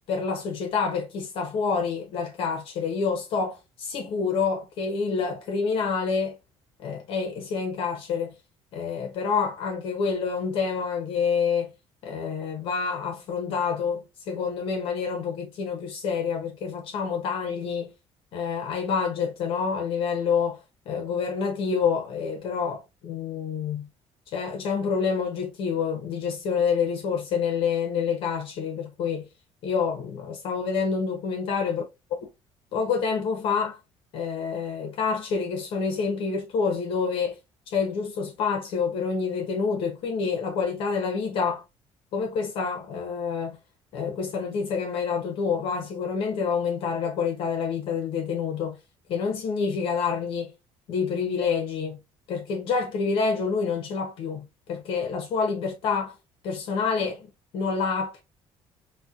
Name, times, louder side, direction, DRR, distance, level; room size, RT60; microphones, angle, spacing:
voice 1, 0.1-6.4 6.8-8.3 8.7-11.7 12.0-17.9 18.3-23.9 24.3-29.3 29.6-31.8 32.7-33.8 34.1-37.4 37.7-41.6 42.1-43.6 43.9-48.8 49.1-50.5 50.9-52.0 52.3-56.2 56.4-57.3 57.5-58.2, left 5 dB, 55° left, 0.7 m, -27 dB
4.1 x 2.1 x 2.3 m
cardioid pair, 180°, 11 cm